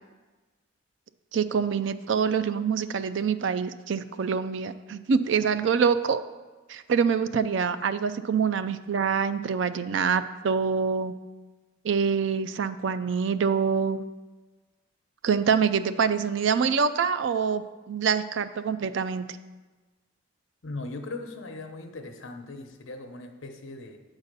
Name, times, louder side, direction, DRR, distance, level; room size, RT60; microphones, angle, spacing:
voice 1, 1.3-6.2 6.7-11.1 11.8-14.0 15.2-19.3, right 6 dB, 65° right, 12 dB, 0.4 m, -25 dB
voice 2, 20.6-24.0, left 2 dB, 75° left, 5 dB, 0.9 m, -39 dB
8.0 x 4.0 x 6.7 m, 1.2 s
head